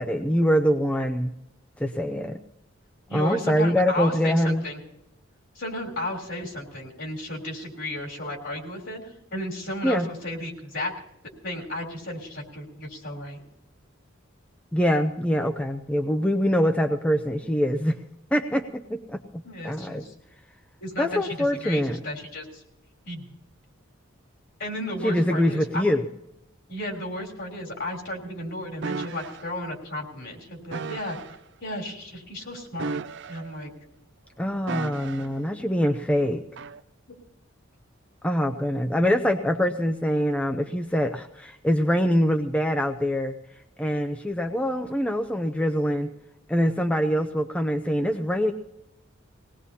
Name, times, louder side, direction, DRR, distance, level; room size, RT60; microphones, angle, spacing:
voice 1, 0.0-1.3 1.8-2.4 3.1-4.6 9.8-10.1 14.7-18.0 18.3-20.0 21.0-22.0 25.0-26.0 34.4-36.4 38.2-43.3 43.8-46.1 46.5-48.5, equal, 5° left, 4 dB, 0.5 m, -24 dB
voice 2, 3.1-4.8 5.6-10.9 11.4-13.4 19.4-20.1 20.8-22.6 23.1-23.3 24.6-25.8 26.7-31.2 31.6-33.0 33.3-33.7, left 1 dB, 60° left, 0 dB, 3.5 m, -34 dB
sound 1, 28.8-29.4 30.7-31.4 32.7-33.7 34.7-35.4 36.6-36.8, right 4 dB, 60° right, 0.5 m, -34 dB
21.0 x 18.5 x 2.8 m, 0.85 s
head